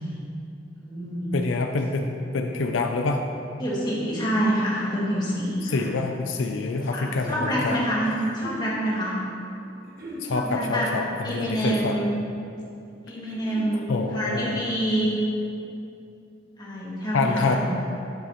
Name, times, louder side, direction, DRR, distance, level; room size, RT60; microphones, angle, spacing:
voice 1, 0.8-1.3 3.6-5.8 6.9-9.2 10.3-10.9 11.2-12.1 13.0-15.2 16.6-17.6, equal, 25° left, -7 dB, 1.8 m, -27 dB
voice 2, 1.3-3.2 5.5-7.8 10.2-12.0 13.9-14.6 17.1-17.6, left 3 dB, 80° left, 4 dB, 0.5 m, -26 dB
sound 1, 6.8-7.5 8.2-8.7 9.8-10.3 11.3-12.0 13.1-13.8, equal, 50° right, 1.6 m, -40 dB
10.0 x 6.6 x 3.1 m, 2.6 s
head